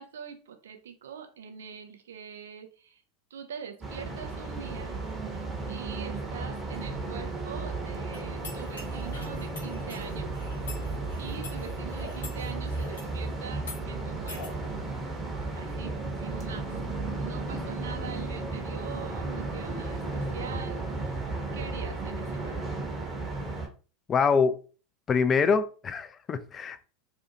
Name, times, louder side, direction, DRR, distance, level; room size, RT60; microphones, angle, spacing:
voice 1, 0.0-3.0 3.3-5.0 5.7-10.3 10.6-10.9 11.2-14.6 15.5-16.8 17.2-21.2 21.5-22.6, right 7 dB, 75° right, 0.4 m, -43 dB
sound 1, 3.8-23.7, right 3 dB, 20° right, 0.9 m, -34 dB
sound 2, 8.1-13.2 13.6-13.8 14.3-14.5, left 3 dB, 85° left, 1.0 m, -46 dB
sound 3, 11.9-12.2 14.3-14.6 15.3-15.5, left 3 dB, 55° left, 0.7 m, -43 dB
voice 2, 24.1-24.6 25.1-26.9, left 5 dB, 30° left, 0.3 m, -25 dB
2.6 x 2.3 x 2.7 m
hypercardioid pair, 85°, 0 cm